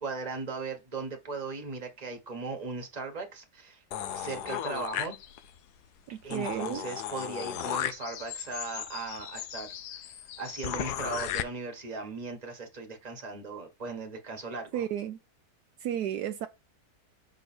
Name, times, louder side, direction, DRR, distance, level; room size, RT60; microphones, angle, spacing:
voice 1, 0.0-3.8 4.1-5.2 6.2-14.8, right 3 dB, 25° right, 1.4 m, -38 dB
sound 1, 3.9-5.6 6.0-6.1 6.3-11.4, left 10 dB, 75° left, 1.2 m, -36 dB
voice 2, 6.3-6.8 14.7-15.2 15.8-16.5, right 10 dB, 75° right, 1.1 m, -32 dB
6.0 x 3.9 x 4.3 m
omnidirectional pair, 1.8 m